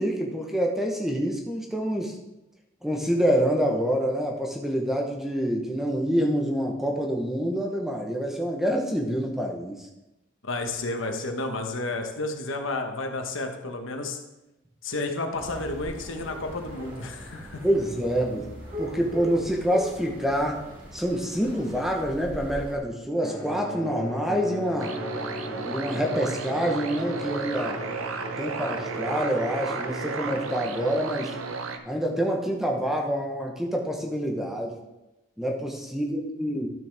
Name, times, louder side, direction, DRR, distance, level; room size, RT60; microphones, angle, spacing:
voice 1, 0.0-2.2 2.8-9.9 17.6-18.5 18.8-20.6 20.9-24.9 25.6-27.8 28.4-31.3 31.9-34.8 35.4-36.7, equal, ahead, 0 dB, 0.9 m, -27 dB
voice 2, 10.4-14.2 14.8-17.6, left 2 dB, 75° left, 4 dB, 1.1 m, -31 dB
sound 1, 15.3-22.8, equal, 40° right, 2.4 m, -40 dB
sound 2, 23.2-30.9, left 1 dB, 20° left, 1.8 m, -38 dB
sound 3, 24.8-31.8, right 4 dB, 85° right, 0.7 m, -34 dB
12.0 x 6.3 x 3.5 m, 0.96 s
head